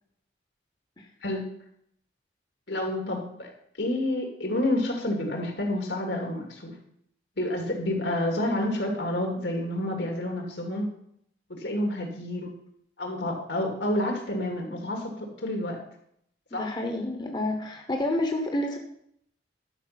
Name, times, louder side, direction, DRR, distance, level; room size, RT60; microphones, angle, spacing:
voice 1, 2.7-3.5 3.8-6.7 7.4-10.9 11.6-12.5 13.0-15.8 16.5-16.7, left 1 dB, 80° left, 2 dB, 2.4 m, -29 dB
voice 2, 16.6-18.8, left 1 dB, 25° left, 3 dB, 1.0 m, -29 dB
11.5 x 5.6 x 5.8 m, 0.71 s
head